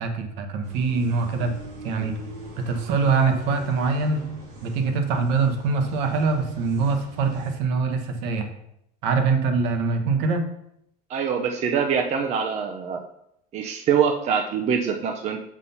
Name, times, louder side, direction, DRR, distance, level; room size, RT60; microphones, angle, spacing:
voice 1, 0.0-1.6 1.8-2.1 2.6-4.2 4.6-8.5 9.0-10.5, right 4 dB, 70° right, 6 dB, 1.2 m, -23 dB
sound 1, 0.6-7.5, right 2 dB, 90° right, 2.7 m, -41 dB
voice 2, 11.1-13.0 13.5-15.4, right 7 dB, 35° right, 4 dB, 0.6 m, -24 dB
6.2 x 4.1 x 5.5 m, 0.77 s
cardioid pair, 145°, 20 cm